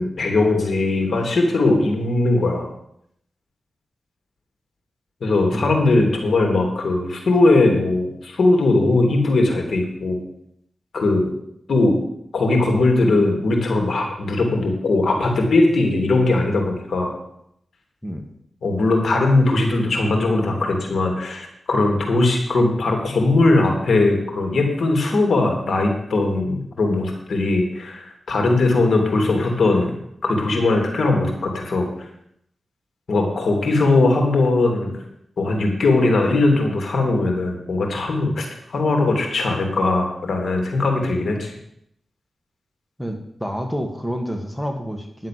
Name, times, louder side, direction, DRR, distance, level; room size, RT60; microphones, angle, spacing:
voice 1, 0.0-2.7 5.2-10.2 10.9-11.3 11.7-12.0 12.3-17.1 18.6-29.9 30.2-31.9 33.1-34.9 35.4-41.5, left 2 dB, 75° left, 2 dB, 3.1 m, -19 dB
voice 2, 43.0-45.3, equal, 5° left, 3 dB, 1.9 m, -28 dB
11.0 x 7.6 x 7.7 m, 0.73 s
cardioid pair, 65°, 0 cm